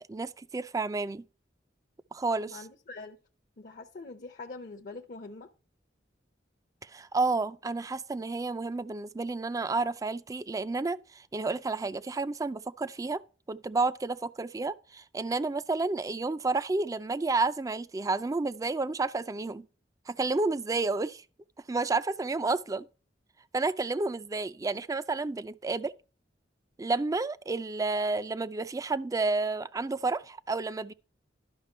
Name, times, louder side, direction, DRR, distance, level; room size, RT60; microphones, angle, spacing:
voice 1, 0.1-1.3 2.1-2.6 6.8-13.2 13.5-19.7 20.1-21.2 21.7-22.9 23.5-25.9 26.8-30.9, right 3 dB, 20° right, 0.3 m, -30 dB
voice 2, 2.4-3.2 3.6-5.5, left 3 dB, 50° left, 0.6 m, -44 dB
11.5 x 5.8 x 4.3 m
head